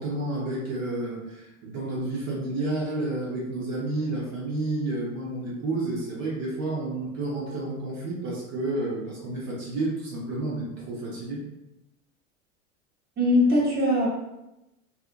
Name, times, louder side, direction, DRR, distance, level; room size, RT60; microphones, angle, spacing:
voice 1, 0.0-11.4, right 2 dB, 55° right, -5 dB, 1.0 m, -30 dB
voice 2, 13.2-14.1, left 1 dB, 25° right, -6 dB, 1.2 m, -21 dB
2.6 x 2.5 x 2.5 m, 0.95 s
hypercardioid pair, 95°, 39 cm